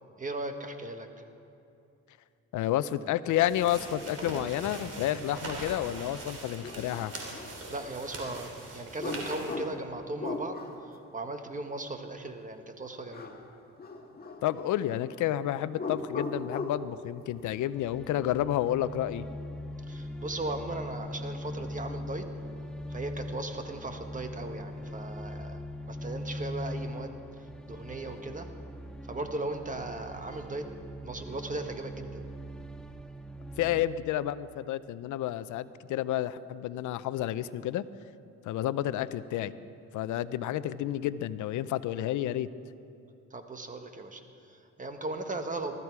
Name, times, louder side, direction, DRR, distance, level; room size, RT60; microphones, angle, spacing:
voice 1, 0.2-1.1 7.7-13.4 19.9-22.2 22.9-28.5 29.1-30.7 31.0-32.3 43.3-45.8, right 2 dB, 25° right, 6 dB, 1.5 m, -37 dB
voice 2, 2.5-7.1 14.4-19.2 33.6-37.8 38.4-39.5 39.9-42.5, left 12 dB, 80° left, 15 dB, 0.6 m, -30 dB
sound 1, 3.3-9.6, right 2 dB, 50° right, 3.6 m, -41 dB
sound 2, 6.6-8.0 9.0-10.9 13.1-13.5 13.8-15.0 15.7-16.9, left 3 dB, 30° left, 1.6 m, -38 dB
sound 3, 17.4-33.9, left 1 dB, 5° left, 0.6 m, -41 dB
19.0 x 14.0 x 4.7 m, 2.7 s
cardioid pair, 90°, 30 cm